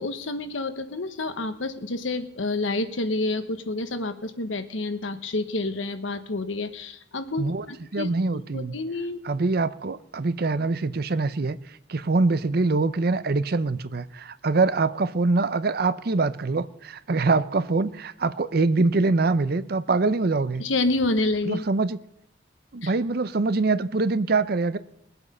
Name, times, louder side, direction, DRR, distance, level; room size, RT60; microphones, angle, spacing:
voice 1, 0.0-8.1 8.5-9.2 20.6-21.6 22.8-22.9, left 2 dB, 85° left, 1.1 m, -28 dB
voice 2, 7.9-8.7 9.2-11.6 11.9-20.6 21.5-22.0 22.7-24.8, right 3 dB, 55° right, 0.6 m, -24 dB
21.0 x 8.0 x 5.4 m
head